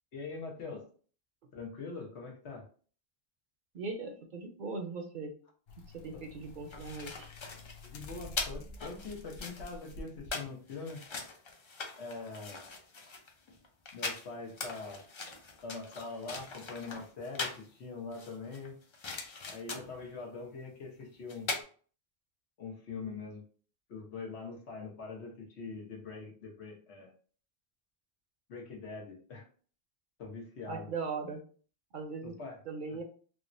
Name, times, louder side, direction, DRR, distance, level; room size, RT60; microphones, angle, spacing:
voice 1, 0.1-0.9 1.5-2.7 7.8-11.0 12.0-12.7 13.9-15.0 15.6-18.7 19.4-21.5 22.6-23.4 23.9-27.1 28.5-29.5 30.2-30.9 32.2-32.6, left 4 dB, 90° left, 0 dB, 1.2 m, -43 dB
voice 2, 3.7-5.3 5.9-7.3 30.7-31.4 31.9-32.3 32.7-33.0, right 4 dB, 60° right, 3 dB, 0.6 m, -39 dB
sound 1, 5.7-10.3 10.7-10.8, left 1 dB, 70° left, 0.8 m, -49 dB
sound 2, 6.4-17.7 18.1-20.0 21.0-21.1 21.3-21.6, left 4 dB, 55° left, 0.3 m, -41 dB
3.4 x 2.1 x 2.5 m, 0.41 s
omnidirectional pair, 1.1 m